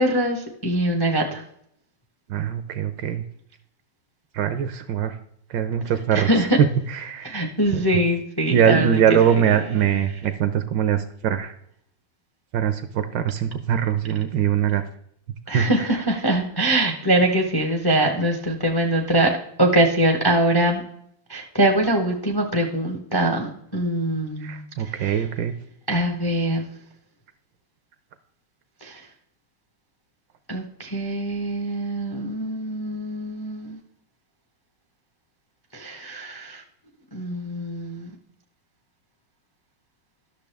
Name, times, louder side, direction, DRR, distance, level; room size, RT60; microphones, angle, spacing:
voice 1, 0.0-1.4 6.1-6.6 7.2-9.2 15.5-20.8 21.3-25.2 25.9-26.7 28.8-29.0 30.5-33.8 35.7-36.6 37.1-38.1, right 1 dB, 35° left, 2 dB, 0.3 m, -23 dB
voice 2, 2.3-3.2 4.3-5.2 5.5-6.3 6.6-7.4 7.7-7.8 8.5-11.5 12.5-14.8 15.5-15.6 24.4-25.5, right 9 dB, 75° right, 10 dB, 1.1 m, -22 dB
11.5 x 6.6 x 3.4 m, 0.69 s
omnidirectional pair, 2.3 m